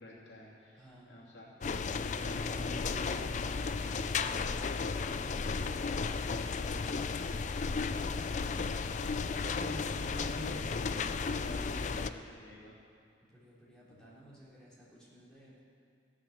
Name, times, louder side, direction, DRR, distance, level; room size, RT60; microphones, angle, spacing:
voice 1, 0.0-12.8 13.9-14.1, equal, 85° left, -5 dB, 2.8 m, -49 dB
voice 2, 0.7-1.2 8.0-8.2 13.3-15.6, equal, 5° left, -9 dB, 3.5 m, -57 dB
sound 1, 1.6-12.1, left 4 dB, 45° left, 0.4 m, -34 dB
15.5 x 7.4 x 6.6 m, 2.4 s
head